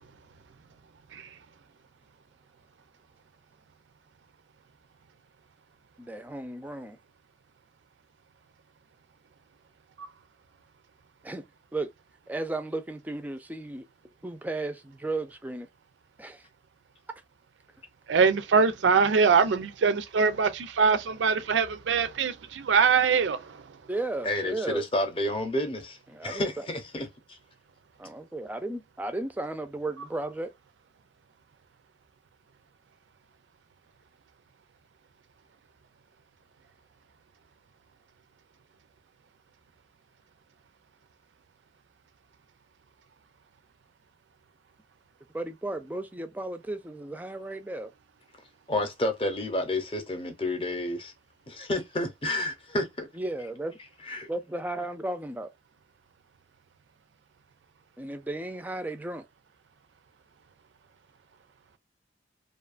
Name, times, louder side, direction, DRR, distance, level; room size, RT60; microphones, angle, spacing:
voice 1, 6.0-7.0 11.2-11.5 11.7-11.9 12.3-13.9 14.2-15.7 16.2-16.5 17.1-17.2 23.9-24.9 26.1-26.7 28.0-30.5 45.3-47.9 53.1-53.8 54.3-55.5 58.0-59.2, right 2 dB, 10° right, 0.3 m, -34 dB
voice 2, 18.1-23.6, right 5 dB, 85° right, 0.5 m, -23 dB
voice 3, 24.2-27.4 48.7-51.1 51.5-53.1 54.1-54.3, left 1 dB, 30° left, 0.7 m, -30 dB
2.8 x 2.2 x 2.4 m
head